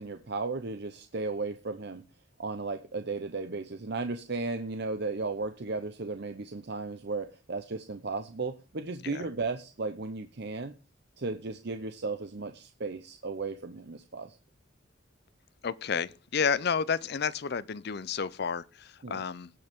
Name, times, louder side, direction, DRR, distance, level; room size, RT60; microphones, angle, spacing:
voice 1, 0.0-2.0 2.4-10.7 11.2-14.4 19.0-19.2, right 3 dB, 55° right, 0.8 m, -35 dB
voice 2, 15.6-19.5, left 6 dB, 55° left, 0.5 m, -31 dB
18.5 x 7.9 x 3.6 m
head